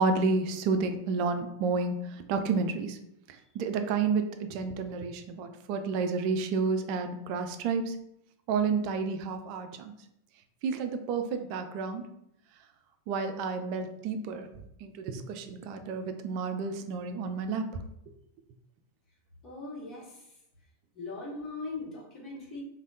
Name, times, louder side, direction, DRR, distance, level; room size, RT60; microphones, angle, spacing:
voice 1, 0.0-3.0 3.5-7.9 8.5-9.9 10.6-12.0 13.1-14.5 14.8-17.6, right 4 dB, 45° right, 7 dB, 0.3 m, -30 dB
voice 2, 19.4-20.2 20.9-22.6, left 3 dB, 30° left, -4 dB, 1.2 m, -40 dB
3.3 x 2.1 x 2.6 m, 0.78 s
figure-of-eight pair, 90°, 0 cm